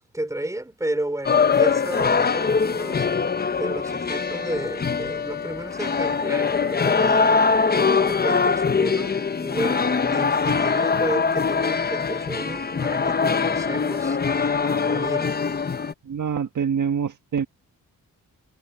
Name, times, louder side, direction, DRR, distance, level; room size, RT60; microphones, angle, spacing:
voice 1, 0.0-3.1 3.6-7.6 8.0-14.2 14.6-15.3, right 1 dB, 10° right, 3.8 m, -32 dB
sound 1, 1.2-15.9, left 5 dB, 25° left, 0.7 m, -22 dB
voice 2, 16.0-17.5, right 7 dB, 60° right, 1.5 m, -25 dB
wide cardioid pair, 120°, 35 cm